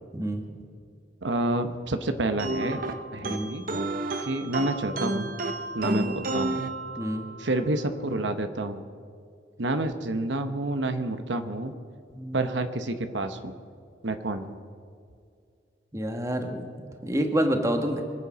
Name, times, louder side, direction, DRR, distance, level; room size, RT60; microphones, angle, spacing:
voice 1, 1.2-2.8 3.1-3.7 4.2-5.3 5.7-6.6 7.4-8.8 9.6-11.7 12.3-13.5 14.0-14.5, right 2 dB, 80° right, 8 dB, 1.0 m, -29 dB
sound 1, 2.4-7.5, right 2 dB, 50° right, 0.9 m, -31 dB
voice 2, 5.8-6.1 7.0-7.3 12.1-12.4 15.9-18.0, equal, 15° right, 5 dB, 1.4 m, -28 dB
25.0 x 8.5 x 6.2 m, 2.3 s
head